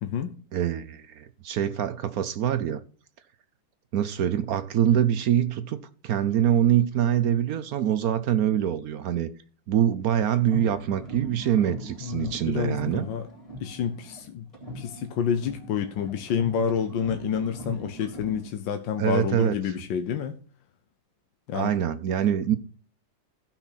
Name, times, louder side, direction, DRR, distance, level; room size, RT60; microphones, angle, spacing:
voice 1, 0.0-0.3 12.0-13.2 13.6-14.5 14.7-20.3 21.5-21.7, left 8 dB, 85° left, 1.5 m, -28 dB
voice 2, 0.5-2.8 3.9-5.8 6.0-9.3 9.7-13.1 19.0-19.6 21.5-22.6, right 10 dB, 65° right, 1.0 m, -24 dB
sound 1, 10.4-14.2 14.5-18.5, equal, 15° left, 3.3 m, -41 dB
15.5 x 5.9 x 4.1 m
omnidirectional pair, 2.0 m